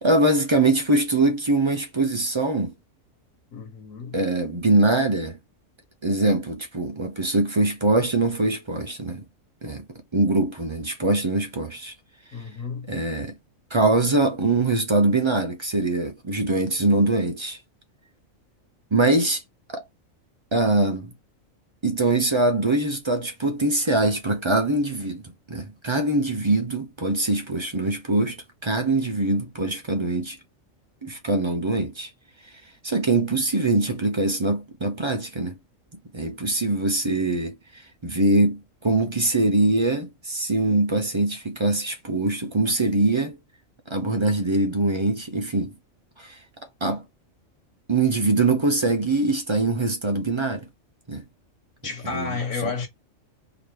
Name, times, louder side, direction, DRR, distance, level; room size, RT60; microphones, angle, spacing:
voice 1, 0.0-2.7 4.1-5.4 6.0-9.2 9.6-9.9 10.1-11.9 12.9-13.3 13.7-17.6 18.9-19.4 19.7-19.8 20.5-21.1 21.8-28.4 28.6-30.4 31.0-32.1 32.8-35.6 36.1-43.4 43.9-45.7 46.2-46.4 46.8-47.0 47.9-50.7 51.1-51.2 52.1-52.4 52.6-52.7, right 2 dB, 30° right, 0.6 m, -23 dB
voice 2, 3.5-4.2 12.3-12.9 51.8-52.9, left 5 dB, 75° left, 1.5 m, -31 dB
3.9 x 2.7 x 3.3 m
omnidirectional pair, 1.4 m